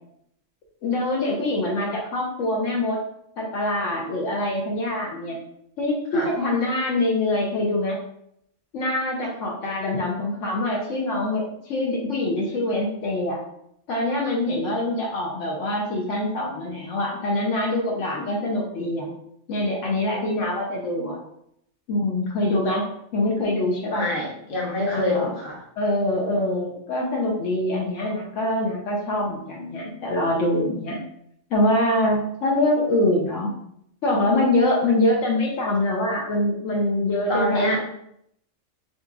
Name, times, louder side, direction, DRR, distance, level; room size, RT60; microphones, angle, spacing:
voice 1, 0.8-3.0 3.4-5.4 5.8-8.0 8.7-13.4 13.9-19.1 19.5-21.2 21.9-22.8 23.1-24.0 24.9-25.3 25.8-31.0 31.5-33.5 34.0-37.8, left 1 dB, 75° left, -2 dB, 1.1 m, -24 dB
voice 2, 23.9-25.6 37.3-37.8, left 1 dB, 45° left, -2 dB, 1.1 m, -25 dB
4.1 x 3.8 x 2.4 m, 0.74 s
omnidirectional pair, 1.3 m